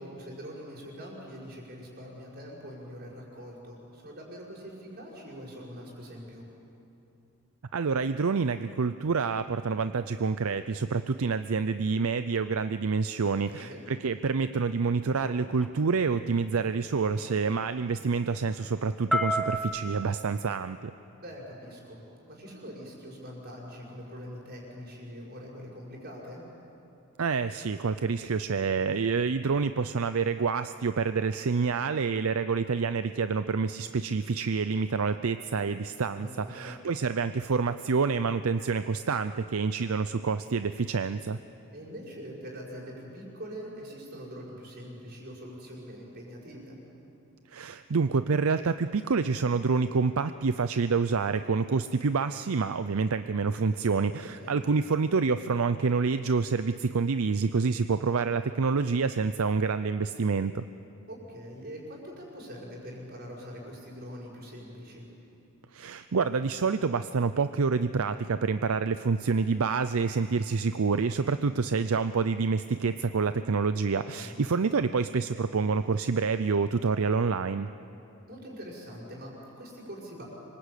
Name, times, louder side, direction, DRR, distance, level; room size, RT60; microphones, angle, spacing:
voice 1, 0.0-6.5 13.3-13.8 21.2-22.0 22.3-26.4 36.1-36.7 41.7-46.8 54.2-54.5 61.1-65.1 73.9-74.3 78.3-80.2, equal, 45° right, -3 dB, 6.3 m, -43 dB
voice 2, 7.7-20.9 27.2-41.4 47.5-60.6 65.7-77.7, right 5 dB, 75° right, 11 dB, 0.5 m, -27 dB
sound 1, 14.7-19.6, equal, ahead, 1.4 m, -34 dB
26.0 x 23.5 x 8.4 m, 2.8 s
head